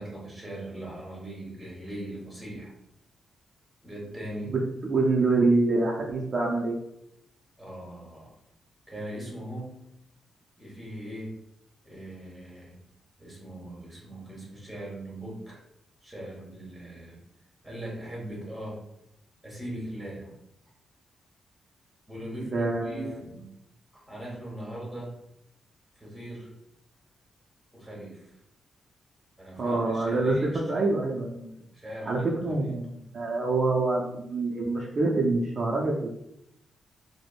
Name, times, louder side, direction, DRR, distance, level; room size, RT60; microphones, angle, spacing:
voice 1, 0.0-2.7 3.8-4.5 7.6-8.3 8.9-9.8 10.6-11.4 11.8-12.8 13.2-15.6 16.0-17.2 17.6-18.8 19.4-20.3 22.1-23.5 23.9-25.1 26.0-26.5 27.7-28.3 29.4-30.9 31.7-32.7, right 1 dB, 5° right, -4 dB, 1.2 m, -40 dB
voice 2, 4.5-6.8 22.4-23.2 29.6-31.5 32.1-36.1, right 3 dB, 45° right, -3 dB, 0.4 m, -26 dB
3.3 x 2.0 x 2.4 m, 0.79 s
cardioid pair, 110°, 0 cm